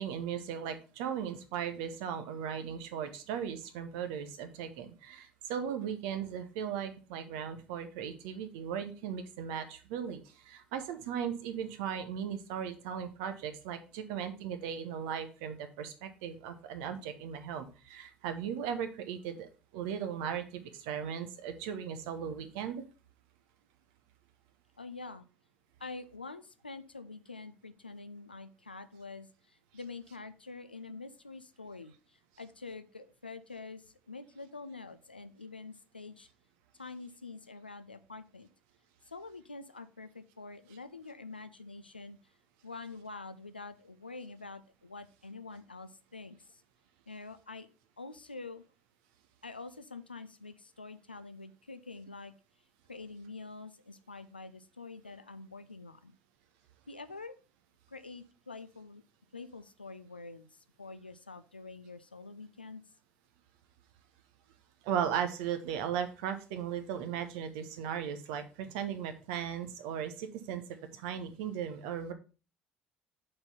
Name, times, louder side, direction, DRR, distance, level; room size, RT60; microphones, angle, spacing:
voice 1, 0.0-22.8 64.8-70.6 70.9-72.1, right 8 dB, 60° right, 8 dB, 1.0 m, -37 dB
voice 2, 24.8-25.3 25.8-36.3 36.8-38.5 39.0-42.2 42.6-46.6 47.1-47.7 48.0-48.6 49.4-52.3 52.9-56.1 56.9-57.4 57.9-59.0 59.3-62.8, left 3 dB, 85° left, 12 dB, 0.4 m, -46 dB
6.7 x 4.4 x 5.4 m, 0.35 s
figure-of-eight pair, 55°, 5 cm